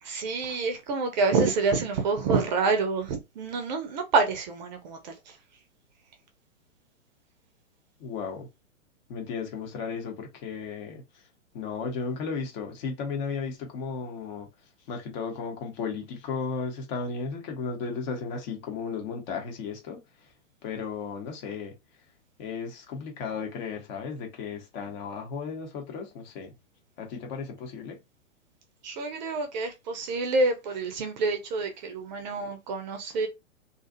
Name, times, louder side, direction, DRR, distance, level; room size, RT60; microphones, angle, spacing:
voice 1, 0.0-5.3 28.8-33.3, right 4 dB, 35° right, 0.6 m, -27 dB
voice 2, 8.0-8.5 9.1-11.0 11.5-14.5 14.9-20.3 20.6-21.7 22.4-26.5 27.0-28.0, left 5 dB, 35° left, 0.9 m, -34 dB
2.6 x 2.4 x 2.5 m
figure-of-eight pair, 115°, 38 cm